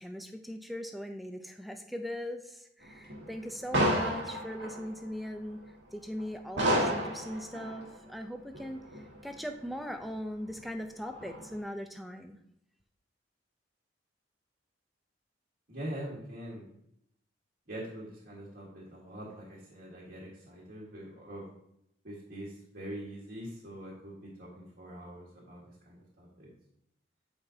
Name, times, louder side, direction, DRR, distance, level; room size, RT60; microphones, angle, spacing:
voice 1, 0.0-5.6 5.9-12.4, equal, ahead, 6 dB, 0.4 m, -40 dB
sound 1, 2.8-5.2 5.6-5.7 6.2-6.3 6.6-8.0 8.5-9.4 9.7-9.8 10.1-10.2 10.5-10.6 11.0-11.5, right 1 dB, 75° right, 1.4 m, -31 dB
voice 2, 15.7-16.7 17.7-21.5 22.0-26.5, right 1 dB, 55° right, -7 dB, 1.5 m, -43 dB
8.2 x 5.0 x 2.7 m, 0.76 s
head